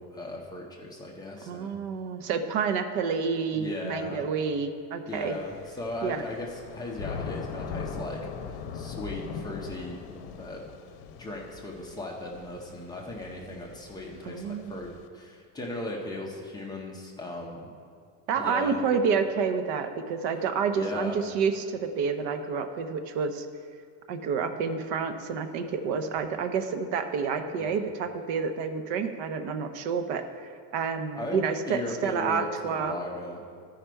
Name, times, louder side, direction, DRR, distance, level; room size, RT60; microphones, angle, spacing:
voice 1, 0.0-1.8 3.5-4.3 5.1-8.2 8.4-10.7 11.1-14.9 15.1-17.7 18.3-18.8 20.7-21.2 27.6-27.8 31.1-33.4, left 2 dB, 10° left, -2 dB, 0.5 m, -37 dB
voice 2, 1.4-5.4 6.0-6.2 14.2-14.9 18.3-23.5 24.1-30.2 30.7-32.9, right 5 dB, 75° right, 8 dB, 0.8 m, -29 dB
Thunder / Rain, 5.1-15.1, left 6 dB, 65° left, 0.7 m, -41 dB
13.5 x 5.0 x 4.5 m, 2.2 s
cardioid pair, 180°, 39 cm